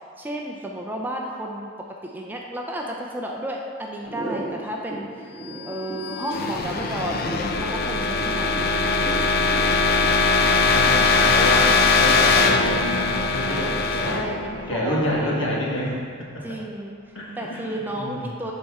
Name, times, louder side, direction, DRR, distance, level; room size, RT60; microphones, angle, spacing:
voice 1, 0.2-5.4 5.6-9.2 11.2-12.0 13.4-15.7 16.4-17.0 17.4-18.5, right 1 dB, 10° right, -1 dB, 0.5 m, -33 dB
sound 1, 4.0-11.9, right 1 dB, 25° left, 1.7 m, -36 dB
sound 2, 5.6-15.4, left 4 dB, 50° left, 0.5 m, -21 dB
voice 2, 10.6-14.3 14.7-16.6 17.1-18.4, equal, 65° left, -3 dB, 1.5 m, -28 dB
11.5 x 4.3 x 3.6 m, 2.2 s
head